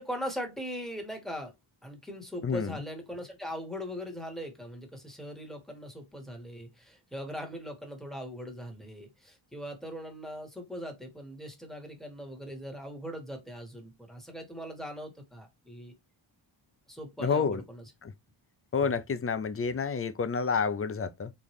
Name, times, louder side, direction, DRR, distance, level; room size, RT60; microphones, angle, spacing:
voice 1, 0.0-1.5 1.8-15.9 16.9-17.8 18.8-19.0, equal, ahead, 1.5 m, -40 dB
voice 2, 17.2-17.6 18.7-21.3, left 5 dB, 30° left, 0.5 m, -29 dB
3.9 x 3.4 x 3.1 m
wide cardioid pair, 100°, 48 cm